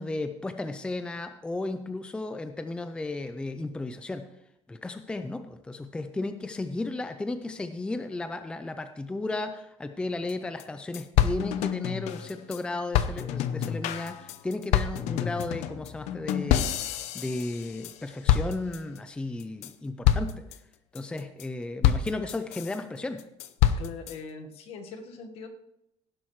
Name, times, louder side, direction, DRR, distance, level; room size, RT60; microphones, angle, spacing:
voice 1, 0.0-4.3 4.7-20.4 20.9-23.2, left 2 dB, 10° left, 9 dB, 0.5 m, -34 dB
sound 1, 10.3-10.4 10.6-10.7 10.9-12.6 12.9-18.0 18.3-19.0 19.4-19.7 20.0-20.6 21.0-21.4 21.8-22.8 23.2-24.2, left 10 dB, 80° left, 0.7 m, -27 dB
voice 2, 23.8-25.5, left 5 dB, 60° left, 5 dB, 1.5 m, -41 dB
17.5 x 11.0 x 3.2 m, 0.82 s
cardioid pair, 160°, 11 cm